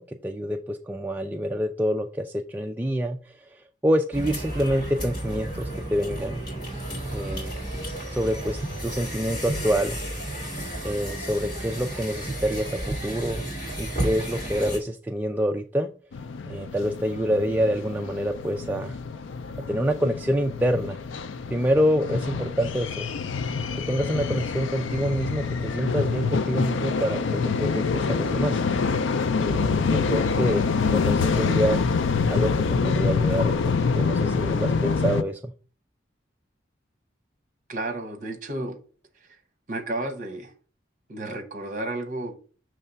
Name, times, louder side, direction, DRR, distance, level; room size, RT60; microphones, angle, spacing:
voice 1, 0.0-6.4 7.1-7.6 8.1-10.0 10.8-13.4 13.8-15.9 16.5-19.0 19.7-21.0 21.5-23.1 23.7-28.6 29.4-31.8 32.3-35.5, equal, 10° right, 0.3 m, -27 dB
sound 1, 4.1-14.8, right 1 dB, 25° left, 2.7 m, -32 dB
sound 2, 16.1-35.2, left 5 dB, 85° left, 0.4 m, -26 dB
voice 2, 37.7-38.8 39.7-40.5 41.1-42.4, right 2 dB, 45° right, 1.1 m, -32 dB
6.6 x 3.3 x 5.6 m
head